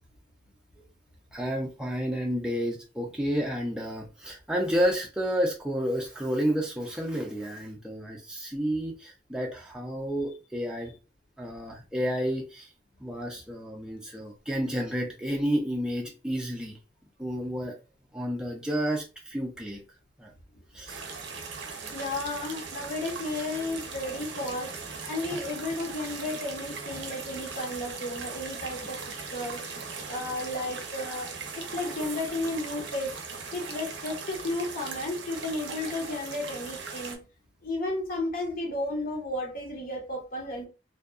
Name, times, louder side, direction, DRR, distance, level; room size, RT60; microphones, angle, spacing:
voice 1, 1.3-10.9 11.4-12.7 13.0-16.8 17.2-17.8 18.1-19.8 20.2-20.3 20.7-21.0, equal, 5° right, 0.4 m, -30 dB
sound 1, 20.9-37.2, right 5 dB, 80° right, 0.6 m, -39 dB
voice 2, 21.9-24.7 25.1-29.0 29.3-29.6 30.1-31.3 31.6-33.1 33.5-37.2 37.6-40.6, left 2 dB, 55° left, 0.7 m, -33 dB
2.6 x 2.2 x 2.3 m
head